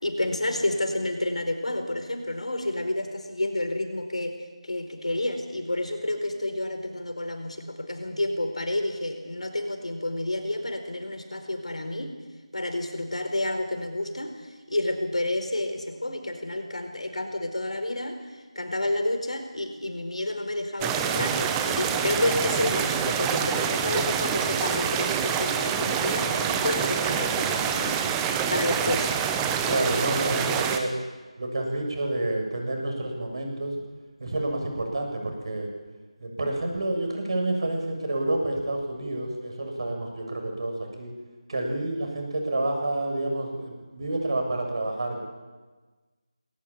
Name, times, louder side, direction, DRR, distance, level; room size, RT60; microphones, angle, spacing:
voice 1, 0.0-12.1 12.5-14.4 14.7-29.1, left 1 dB, 75° left, 6 dB, 4.7 m, -30 dB
sound 1, 20.8-30.8, right 7 dB, 10° right, 0.9 m, -26 dB
voice 2, 29.6-30.9 31.4-33.7 34.2-35.7 36.2-41.1 41.5-45.2, right 2 dB, 50° right, 2 dB, 7.2 m, -29 dB
21.0 x 18.0 x 9.0 m, 1.3 s
figure-of-eight pair, 165°, 4 cm